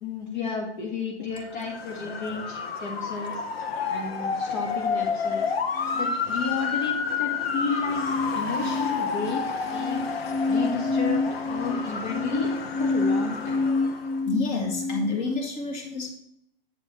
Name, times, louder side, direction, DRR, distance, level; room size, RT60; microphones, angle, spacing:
voice 1, 0.0-3.4 3.9-5.5 5.9-8.0 8.3-9.4 9.7-10.0 10.5-13.6, left 4 dB, 55° left, 0 dB, 1.6 m, -32 dB
Motor vehicle (road) / Siren, 1.5-14.2, left 5 dB, 85° left, 1.1 m, -30 dB
sound 1, 5.8-15.4, left 3 dB, 10° left, 0.3 m, -29 dB
voice 2, 14.3-16.1, left 3 dB, 35° left, 2 dB, 2.1 m, -29 dB
9.2 x 4.4 x 5.7 m, 0.75 s
hypercardioid pair, 140°, 30 cm